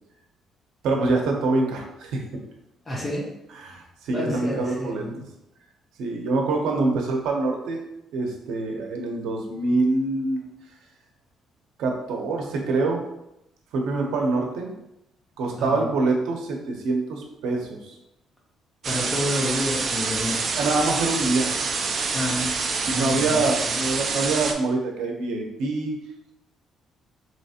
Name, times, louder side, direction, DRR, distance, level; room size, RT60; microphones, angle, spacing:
voice 1, 0.8-2.2 3.5-5.0 6.0-7.8 8.1-10.5 11.8-13.0 13.7-14.7 15.4-17.9 20.6-21.5 22.8-26.0, right 3 dB, 85° right, 1 dB, 0.7 m, -25 dB
voice 2, 2.9-3.2 4.1-5.2 15.6-15.9 18.8-20.5 22.1-22.6 22.9-23.4, left 1 dB, 15° left, -3 dB, 0.6 m, -29 dB
sound 1, 18.8-24.5, right 4 dB, 35° right, 0.3 m, -26 dB
3.2 x 3.0 x 2.8 m, 0.84 s
cardioid pair, 175°, 0 cm